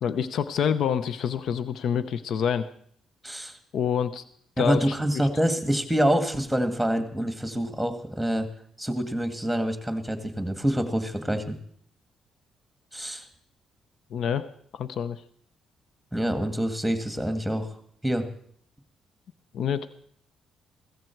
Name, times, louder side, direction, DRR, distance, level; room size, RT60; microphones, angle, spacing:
voice 1, 0.0-2.7 3.7-4.2 4.6-5.3 14.1-14.5 14.7-15.2 19.5-19.9, left 8 dB, 70° left, 13 dB, 0.7 m, -27 dB
voice 2, 3.2-3.6 4.6-8.5 8.8-11.5 12.9-13.3 16.1-17.7 18.0-18.3, equal, ahead, 7 dB, 1.9 m, -26 dB
15.5 x 14.5 x 4.6 m, 0.63 s
cardioid pair, 90°, 0 cm